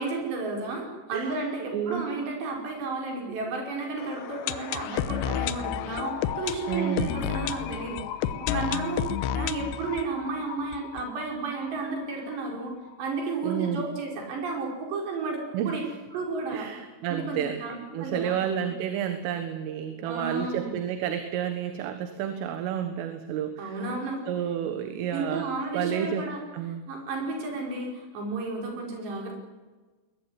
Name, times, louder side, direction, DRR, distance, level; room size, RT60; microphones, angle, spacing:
voice 1, 0.0-8.0 8.4-12.7 13.0-15.8 16.1-18.4 18.6-18.7 20.1-20.7 23.6-24.2 25.1-26.4 26.9-29.3, right 3 dB, 55° right, 1 dB, 7.5 m, -32 dB
voice 2, 1.7-2.1 6.7-7.1 13.4-13.8 15.5-15.7 16.5-25.4 25.7-26.2 26.5-26.8, right 9 dB, 75° right, 8 dB, 4.0 m, -30 dB
sound 1, 4.0-11.7 12.0-12.1 12.3-12.4 12.9-13.0, left 10 dB, 75° left, 2.8 m, -31 dB
21.5 x 20.0 x 9.9 m, 1.3 s
omnidirectional pair, 6.0 m